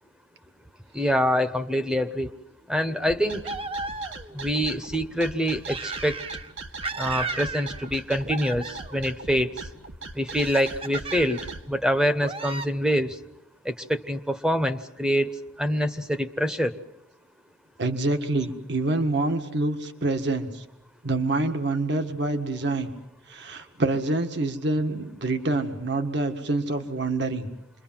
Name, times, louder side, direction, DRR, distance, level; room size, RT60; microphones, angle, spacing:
voice 1, 0.9-2.3 2.7-3.5 4.3-6.2 7.0-9.5 10.1-11.4 11.7-13.2 13.6-16.8, equal, 5° right, 9 dB, 1.0 m, -25 dB
sound 1, 3.0-11.6, right 3 dB, 80° right, 2.2 m, -39 dB
sound 2, 3.4-4.4 5.7-6.5 6.8-8.0 8.3-9.1 10.3-11.5 12.2-12.7, right 3 dB, 30° right, 1.1 m, -35 dB
voice 2, 17.8-20.7 21.0-22.9 23.3-27.5, right 2 dB, 60° right, 6 dB, 1.8 m, -26 dB
28.5 x 23.0 x 7.5 m, 0.83 s
head